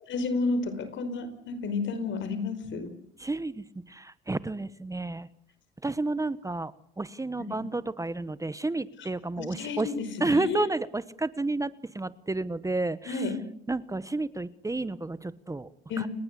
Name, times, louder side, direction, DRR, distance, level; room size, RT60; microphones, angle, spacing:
voice 1, 0.1-2.9 7.5-7.6 9.4-10.7 13.1-13.4 15.9-16.1, left 3 dB, 70° left, 12 dB, 5.2 m, -31 dB
voice 2, 3.2-5.3 5.8-6.7 7.0-9.9 10.2-13.2 13.7-15.7 16.0-16.1, right 2 dB, 15° right, 16 dB, 1.0 m, -31 dB
29.5 x 20.5 x 8.4 m, 0.69 s
cardioid pair, 90°, 20 cm